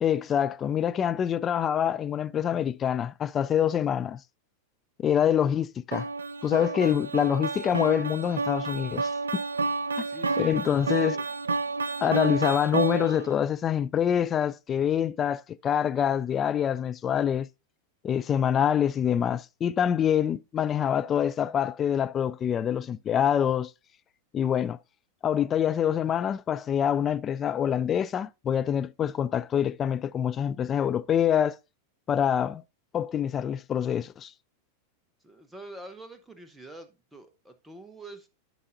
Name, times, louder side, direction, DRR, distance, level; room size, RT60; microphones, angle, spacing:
voice 1, 0.0-4.2 5.0-6.1 6.4-9.4 10.0-10.1 10.4-11.2 12.0-17.5 18.0-23.7 24.3-24.8 25.2-31.6 32.1-32.6 32.9-34.3, left 9 dB, 25° left, 0.4 m, -26 dB
sound 1, 5.9-13.3, right 3 dB, 75° right, 0.4 m, -30 dB
voice 2, 10.0-11.2 35.2-38.3, right 1 dB, 5° right, 0.9 m, -46 dB
12.0 x 5.4 x 2.6 m
figure-of-eight pair, 90°, 0 cm